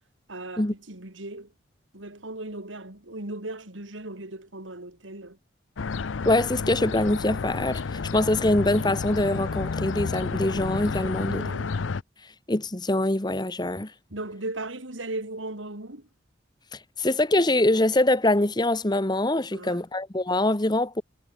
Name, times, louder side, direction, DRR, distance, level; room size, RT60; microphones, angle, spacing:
voice 1, 0.3-1.5 1.9-5.4 11.1-11.8 14.1-16.1 19.5-19.8, right 2 dB, 85° right, 3.7 m, -37 dB
sound 1, 5.8-12.0, left 4 dB, 85° left, 0.6 m, -30 dB
voice 2, 6.2-11.5 12.5-13.9 16.7-21.0, left 1 dB, 20° left, 1.2 m, -24 dB
head